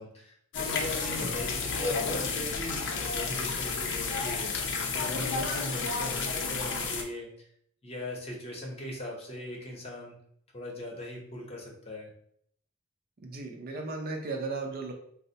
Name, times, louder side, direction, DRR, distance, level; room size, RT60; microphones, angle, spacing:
voice 1, 0.0-7.5 7.8-10.1 10.5-12.1, left 1 dB, 30° left, -1 dB, 0.8 m, -39 dB
sound 1, 0.5-7.0, left 4 dB, 60° left, 0.5 m, -31 dB
voice 2, 13.2-14.9, right 3 dB, 45° right, 2 dB, 0.5 m, -35 dB
4.1 x 2.0 x 2.7 m, 0.66 s
head